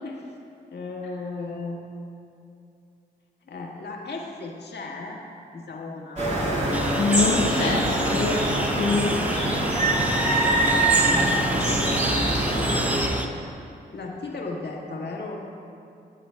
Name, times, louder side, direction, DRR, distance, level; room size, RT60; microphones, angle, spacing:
voice 1, 0.7-1.8 3.4-5.2 5.5-6.4 8.7-9.2 11.5-12.2 13.9-15.4, left 3 dB, 60° left, -1 dB, 1.7 m, -35 dB
sound 1, 6.2-13.1, right 1 dB, 35° right, 2.5 m, -23 dB
sound 2, 6.7-13.3, right 1 dB, 5° right, 0.7 m, -32 dB
voice 2, 7.0-7.8 8.1-9.1, left 4 dB, 90° left, -6 dB, 1.3 m, -24 dB
18.0 x 7.6 x 2.3 m, 2.5 s
supercardioid pair, 40°, 19 cm